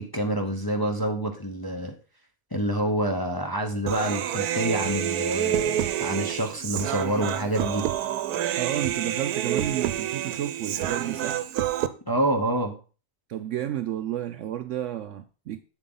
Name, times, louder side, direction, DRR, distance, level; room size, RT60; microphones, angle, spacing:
voice 1, 0.0-2.0 2.5-7.9 12.1-12.8, right 1 dB, 20° left, 0.7 m, -27 dB
Human voice, 3.9-11.9, right 11 dB, 90° right, 1.2 m, -28 dB
voice 2, 8.6-11.4 13.3-15.6, right 11 dB, 70° right, 0.8 m, -31 dB
8.2 x 7.4 x 3.9 m
omnidirectional pair, 1.6 m